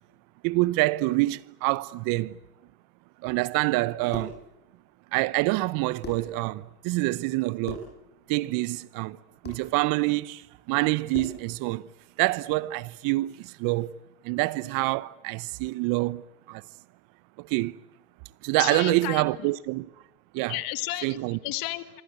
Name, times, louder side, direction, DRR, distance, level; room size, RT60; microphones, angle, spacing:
voice 1, 0.4-2.4 3.2-4.4 5.1-7.9 8.3-9.2 9.4-11.9 12.2-13.9 14.2-16.2 16.5-16.6 17.4-17.8 18.4-19.9 20.3-20.6 21.0-21.4, right 21 dB, 45° right, 1.0 m, -26 dB
sound 1, 3.8-4.4 5.6-5.7 6.0-6.3 7.6-8.0 9.4-9.7 11.1-11.5, left 4 dB, 20° left, 8.0 m, -39 dB
voice 2, 18.6-19.3 20.5-21.2 21.4-22.0, left 18 dB, 50° left, 1.8 m, -32 dB
26.0 x 25.5 x 8.0 m
hypercardioid pair, 105°, 45 cm